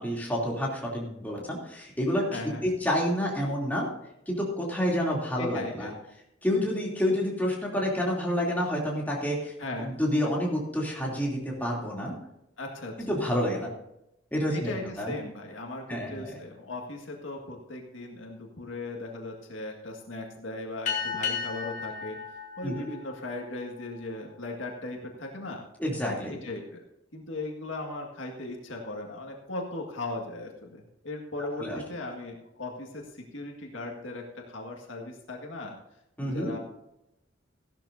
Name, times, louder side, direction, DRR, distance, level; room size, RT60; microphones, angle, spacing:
voice 1, 0.0-3.9 4.3-5.9 6.4-12.2 13.1-13.7 14.3-15.1 15.9-16.4 22.6-22.8 25.8-26.4 31.6-31.8 36.2-36.5, equal, 10° left, -3 dB, 3.0 m, -29 dB
voice 2, 2.3-2.6 5.4-5.9 9.6-9.9 12.6-13.1 14.5-22.2 22.6-25.6 26.3-26.9 27.1-35.8 36.2-36.6, left 2 dB, 85° left, 1 dB, 1.9 m, -38 dB
sound 1, 20.8-23.8, left 6 dB, 40° left, 2.0 m, -34 dB
15.0 x 12.0 x 2.7 m, 0.84 s
head